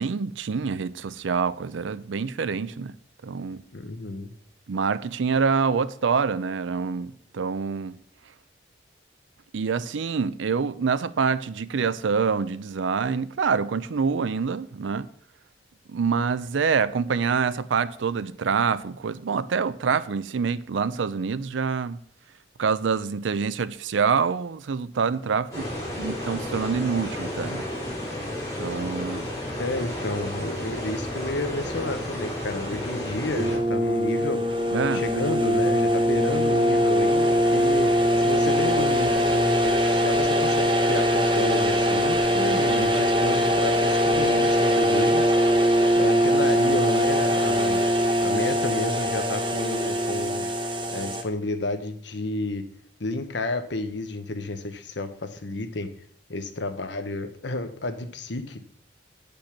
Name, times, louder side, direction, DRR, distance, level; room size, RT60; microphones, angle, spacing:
voice 1, 0.0-3.0 3.2-3.6 4.7-8.0 9.5-15.1 15.9-22.0 22.6-25.7 26.0-27.7 28.6-29.3 34.7-35.0 42.7-42.9, right 5 dB, 85° right, 0.5 m, -26 dB
voice 2, 3.7-4.3 29.6-34.6 34.9-45.6 46.0-50.5 50.9-52.7 53.0-55.9 56.3-58.6, left 2 dB, 70° left, 0.9 m, -31 dB
sound 1, 25.5-33.6, left 1 dB, 15° left, 3.9 m, -32 dB
sound 2, 33.4-51.2, equal, 25° right, 0.9 m, -22 dB
8.5 x 5.3 x 5.9 m
head